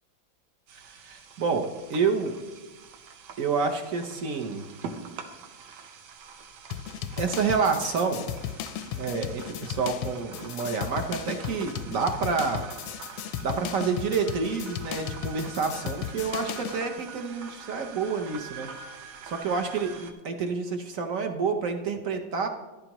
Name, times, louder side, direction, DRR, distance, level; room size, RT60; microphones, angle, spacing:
voice 1, 0.7-2.3 3.4-4.7 5.8-5.9 7.2-8.2 9.0-12.7 13.4-18.7 19.0-22.5, right 5 dB, 55° right, 5 dB, 1.0 m, -29 dB
sound 1, 0.7-20.1, right 6 dB, 90° right, 1.7 m, -45 dB
sound 2, 6.7-16.8, left 10 dB, 85° left, 1.4 m, -36 dB
14.0 x 11.0 x 3.0 m, 1.2 s
omnidirectional pair, 2.1 m